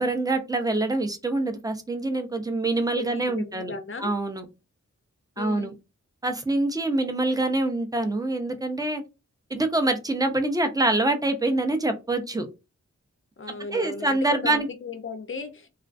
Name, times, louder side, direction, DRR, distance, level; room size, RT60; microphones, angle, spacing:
voice 1, 0.0-3.7 4.0-4.5 5.4-5.7 6.2-9.0 9.5-12.5 13.7-14.7, right 2 dB, 15° right, 0.4 m, -25 dB
voice 2, 2.9-4.1 5.4-5.7 13.4-15.7, left 4 dB, 45° left, 0.5 m, -35 dB
2.3 x 2.3 x 2.4 m
wide cardioid pair, 80°, 30 cm